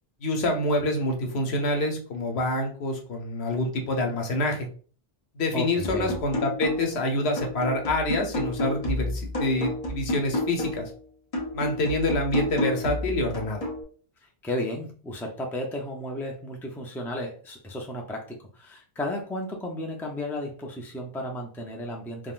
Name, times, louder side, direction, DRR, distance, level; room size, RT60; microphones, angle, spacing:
voice 1, 0.2-4.7 5.3-10.9 11.5-13.7, left 1 dB, 90° left, 3 dB, 1.0 m, -27 dB
voice 2, 5.5-6.1 14.4-22.3, left 1 dB, 5° left, 1 dB, 0.3 m, -33 dB
sound 1, 5.8-7.0 7.4-10.9 11.3-13.8, left 1 dB, 35° left, 0.9 m, -30 dB
3.6 x 2.3 x 2.4 m, 0.41 s
omnidirectional pair, 1.1 m